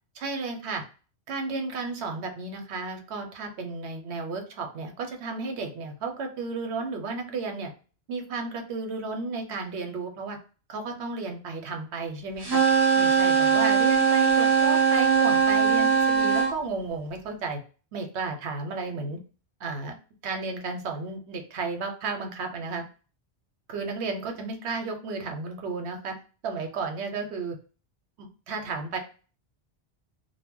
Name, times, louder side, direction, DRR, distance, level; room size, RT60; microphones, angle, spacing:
voice 1, 0.1-0.8 1.3-7.7 8.1-10.4 10.7-12.6 13.0-17.6 17.9-19.2 19.6-20.0 20.2-22.8 23.7-26.2 26.4-27.6 28.2-29.0, right 3 dB, 85° right, 3 dB, 0.9 m, -33 dB
sound 1, 12.4-16.5, right 6 dB, 30° right, 0.5 m, -21 dB
2.1 x 2.1 x 3.5 m, 0.36 s
omnidirectional pair, 1.1 m